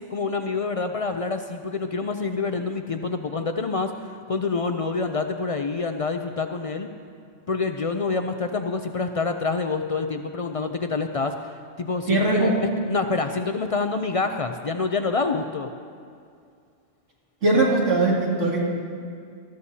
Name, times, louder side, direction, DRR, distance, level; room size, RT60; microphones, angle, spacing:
voice 1, 0.1-6.9 7.5-15.7, left 4 dB, 65° left, 6 dB, 0.3 m, -27 dB
voice 2, 12.1-12.5 17.4-18.6, right 2 dB, 85° right, -5 dB, 2.8 m, -20 dB
19.0 x 13.5 x 2.8 m, 2.3 s
omnidirectional pair, 1.2 m